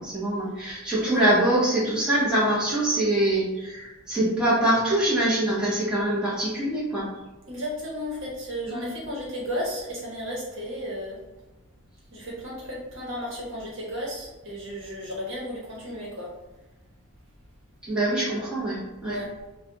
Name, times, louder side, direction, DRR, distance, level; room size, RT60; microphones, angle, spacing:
voice 1, 0.0-7.0 8.7-8.9 17.8-19.2, right 1 dB, 5° right, -9 dB, 1.0 m, -24 dB
voice 2, 7.5-11.2 12.1-16.3 19.0-19.3, equal, 55° right, -5 dB, 1.1 m, -34 dB
3.3 x 2.3 x 3.9 m, 1.1 s
head